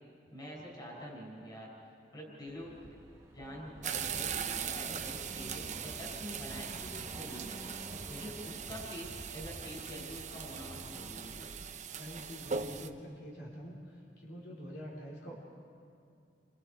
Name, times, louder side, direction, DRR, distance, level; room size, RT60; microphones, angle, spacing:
voice 1, 0.3-1.7 2.1-2.9 3.3-7.6 8.1-11.5, equal, 25° left, -3 dB, 5.7 m, -46 dB
Accelerating revving vroom, 2.5-11.2, equal, 15° right, 2.1 m, -51 dB
sound 1, 3.8-12.9, right 7 dB, 40° right, 0.8 m, -40 dB
sound 2, 4.0-10.4, equal, 45° left, 7.2 m, -52 dB
voice 2, 12.0-13.8 14.2-15.3, equal, 65° left, -5 dB, 3.6 m, -46 dB
29.0 x 25.0 x 4.6 m, 2.4 s
head